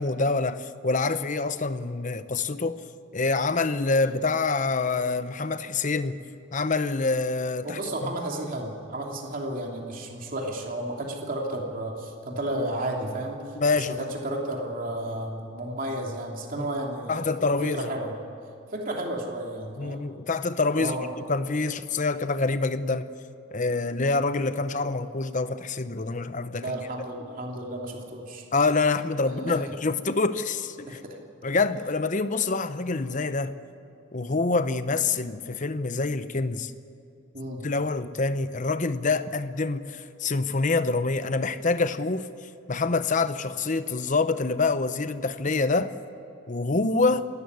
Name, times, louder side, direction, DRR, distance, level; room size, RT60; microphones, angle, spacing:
voice 1, 0.0-2.8 3.1-6.2 6.5-8.1 13.5-14.1 16.6-16.7 17.1-17.9 19.8-21.0 21.3-23.1 23.5-26.9 28.5-31.0 31.4-33.5 34.1-36.7 37.6-42.3 42.7-45.9 46.5-47.2, left 3 dB, 40° left, 0.8 m, -26 dB
voice 2, 7.6-13.4 13.7-17.3 17.6-18.2 18.7-20.1 20.8-21.1 26.5-28.4 29.5-29.6 30.9-31.1 37.3-37.7, right 1 dB, 40° right, 3.0 m, -32 dB
27.5 x 13.5 x 9.6 m
head